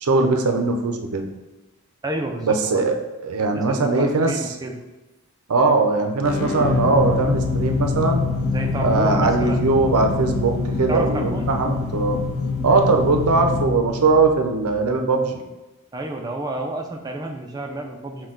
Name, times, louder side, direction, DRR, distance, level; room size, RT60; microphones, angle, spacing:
voice 1, 0.0-1.3 2.4-2.9 3.2-4.3 5.5-8.2 8.8-12.2 12.6-15.4, right 3 dB, 85° right, 5 dB, 0.5 m, -20 dB
voice 2, 2.0-2.9 3.5-4.8 8.5-9.7 10.9-11.5 15.9-18.3, right 1 dB, 15° right, 2 dB, 0.4 m, -30 dB
sound 1, 6.2-14.9, left 4 dB, 60° left, 0.5 m, -25 dB
6.0 x 2.2 x 3.7 m, 1.1 s
head